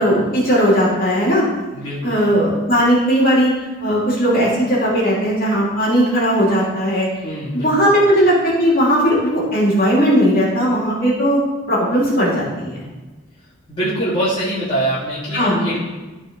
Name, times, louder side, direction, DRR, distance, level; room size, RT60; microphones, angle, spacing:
voice 1, 0.0-1.4 2.0-3.5 3.8-7.1 7.5-11.4 11.7-12.8 15.3-15.6, equal, 45° left, -5 dB, 2.7 m, -17 dB
voice 2, 7.2-7.7 13.7-15.8, right 1 dB, 25° left, -11 dB, 2.1 m, -23 dB
13.0 x 4.8 x 3.7 m, 1.2 s
head